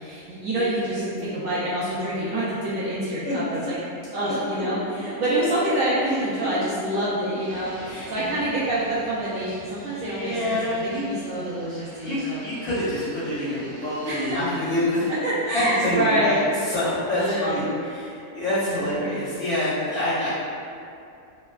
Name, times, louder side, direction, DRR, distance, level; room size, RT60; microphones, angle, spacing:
voice 1, 0.0-3.8 4.1-7.7 8.1-10.6 10.9-12.4 14.0-14.4 15.0-16.4 17.1-17.8 18.7-19.1, right 1 dB, 65° right, -10 dB, 0.8 m, -26 dB
voice 2, 0.9-1.2 3.2-3.6 4.2-4.3 6.0-6.5 7.8-8.4 9.9-11.1 12.0-15.1 15.5-20.3, left 1 dB, 60° left, -15 dB, 1.9 m, -27 dB
Fixed-wing aircraft airplane, 7.3-15.1, right 1 dB, 85° right, 1.2 m, -46 dB
4.1 x 2.2 x 2.3 m, 2.6 s
omnidirectional pair, 1.6 m